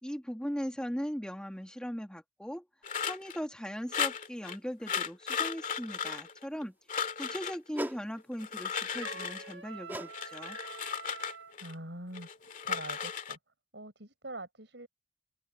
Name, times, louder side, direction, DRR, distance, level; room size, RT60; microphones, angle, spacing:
voice 1, 0.0-2.7 3.0-6.8 7.2-10.6, equal, 5° left, 1.9 m, -39 dB
sound 1, 2.8-3.4 3.9-4.6 4.9-6.6 6.9-7.6 8.3-9.5 10.1-11.7 12.1-13.4, left 7 dB, 45° left, 2.3 m, -35 dB
sound 2, 7.7-8.0 9.9-10.2 10.4-10.7 11.3-11.4, right 1 dB, 10° right, 1.8 m, -39 dB
Trumpet, 9.0-11.6, right 6 dB, 85° right, 1.5 m, -46 dB
voice 2, 11.5-12.3 12.6-13.4 13.7-14.9, right 1 dB, 70° right, 5.6 m, -44 dB
open air
head